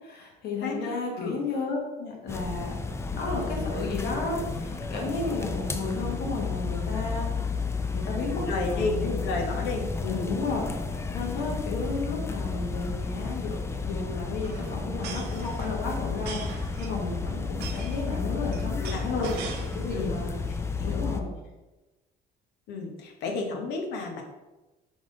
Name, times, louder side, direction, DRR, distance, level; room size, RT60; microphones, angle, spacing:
voice 1, 0.0-2.8 3.1-7.4 7.9-9.3 10.1-13.6 13.8-19.3 19.7-20.4 20.7-21.3, left 3 dB, 70° left, -1 dB, 1.3 m, -33 dB
voice 2, 0.6-1.4 8.5-9.0 9.2-10.3 18.8-19.5 19.9-20.1 20.8-21.1 22.7-24.2, left 3 dB, 90° left, 2 dB, 0.9 m, -32 dB
sound 1, 2.3-21.2, left 4 dB, 15° left, 0.3 m, -32 dB
sound 2, 13.7-20.1 20.5-20.9, right 5 dB, 80° right, 0.7 m, -42 dB
3.8 x 3.6 x 3.7 m, 1.1 s
cardioid pair, 110°, 17 cm